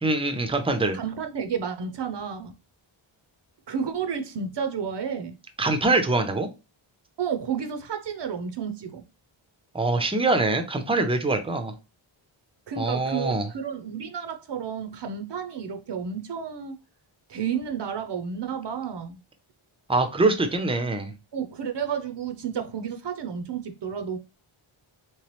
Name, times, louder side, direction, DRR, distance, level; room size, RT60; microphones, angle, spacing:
voice 1, 0.0-1.0 5.6-6.5 9.7-11.7 12.8-13.5 19.9-21.1, right 2 dB, 10° right, 0.5 m, -24 dB
voice 2, 0.9-2.6 3.7-5.4 7.2-9.0 12.7-16.8 17.3-19.2 21.3-24.2, right 7 dB, 60° right, 0.6 m, -31 dB
3.2 x 3.1 x 3.0 m
wide cardioid pair, 110°, 48 cm